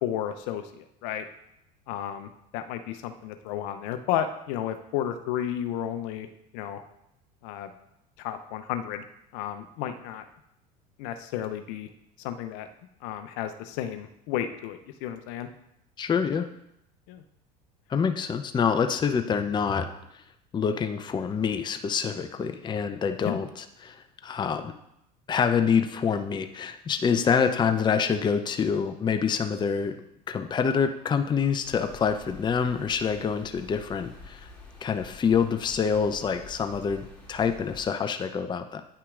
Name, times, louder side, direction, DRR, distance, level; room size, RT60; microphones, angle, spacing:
voice 1, 0.0-1.2 1.9-6.3 6.5-6.8 7.4-7.7 8.2-9.0 9.3-10.2 11.0-11.9 12.2-12.7 13.0-15.5 17.1-17.2 23.2-23.4, left 10 dB, 65° left, 8 dB, 0.6 m, -32 dB
voice 2, 16.0-16.5 17.9-19.9 20.5-24.7 25.3-30.0 30.3-34.5 34.8-38.8, left 6 dB, 20° left, 7 dB, 0.5 m, -26 dB
sound 1, 31.6-37.9, left 3 dB, 5° left, 2.4 m, -48 dB
9.4 x 5.7 x 2.4 m, 0.80 s
hypercardioid pair, 80°, 21 cm